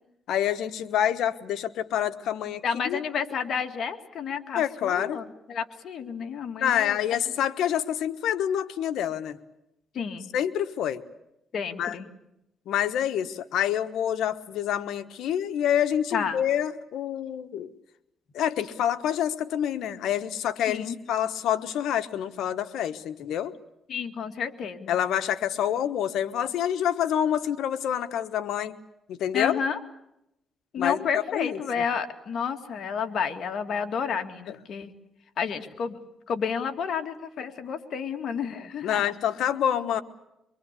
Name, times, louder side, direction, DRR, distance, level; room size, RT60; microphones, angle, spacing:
voice 1, 0.3-3.0 4.5-5.2 6.6-9.4 10.3-11.0 11.8-11.9 12.7-17.7 18.3-23.5 24.9-28.7 29.1-29.6 30.8-31.6 38.8-40.0, left 10 dB, 85° left, 11 dB, 1.3 m, -27 dB
voice 2, 2.6-7.0 9.9-10.3 11.5-12.1 16.1-16.4 20.7-20.9 23.9-25.0 29.3-29.8 30.7-34.9 35.4-36.0 36.3-39.1, left 6 dB, 60° left, 5 dB, 2.4 m, -31 dB
24.0 x 24.0 x 8.4 m, 0.84 s
cardioid pair, 105°, 0 cm